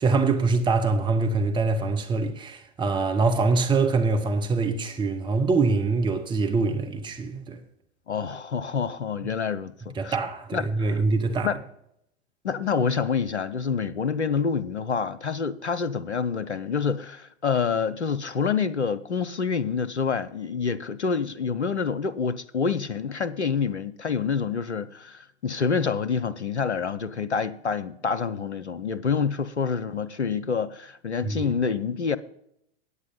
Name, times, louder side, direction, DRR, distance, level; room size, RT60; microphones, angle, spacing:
voice 1, 0.0-7.6 10.0-11.5 31.2-31.5, right 3 dB, 15° right, 1.0 m, -24 dB
voice 2, 8.1-10.2 10.5-11.0 11.4-11.6 12.4-32.2, left 6 dB, 85° left, 0.7 m, -27 dB
9.7 x 8.2 x 5.6 m
figure-of-eight pair, 90°, 33 cm